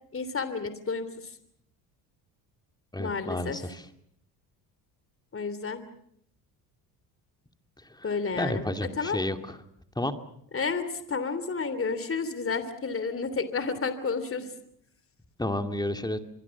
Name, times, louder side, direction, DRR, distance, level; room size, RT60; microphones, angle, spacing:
voice 1, 0.1-1.3 3.0-3.6 5.3-5.8 8.0-8.7 8.9-9.2 10.5-14.5, left 4 dB, 30° left, 12 dB, 3.1 m, -31 dB
voice 2, 2.9-3.8 8.0-8.1 8.4-9.6 10.0-10.1 15.4-16.2, left 1 dB, 10° left, 7 dB, 2.5 m, -31 dB
25.5 x 23.5 x 7.2 m, 0.71 s
supercardioid pair, 75°, 47 cm